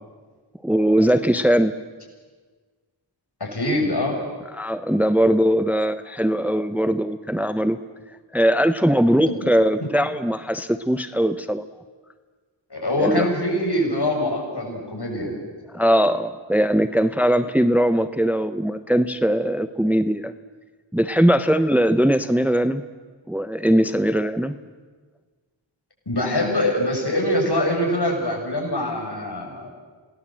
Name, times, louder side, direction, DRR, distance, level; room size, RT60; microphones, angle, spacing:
voice 1, 0.6-1.7 4.5-7.8 8.3-11.7 13.0-13.3 15.7-20.3 20.9-22.8 23.3-24.5, equal, 5° right, 11 dB, 0.9 m, -20 dB
voice 2, 3.4-4.2 9.3-9.4 12.7-15.4 26.1-29.7, left 1 dB, 55° left, 0 dB, 7.6 m, -23 dB
27.5 x 20.0 x 7.8 m, 1.4 s
cardioid pair, 40°, 47 cm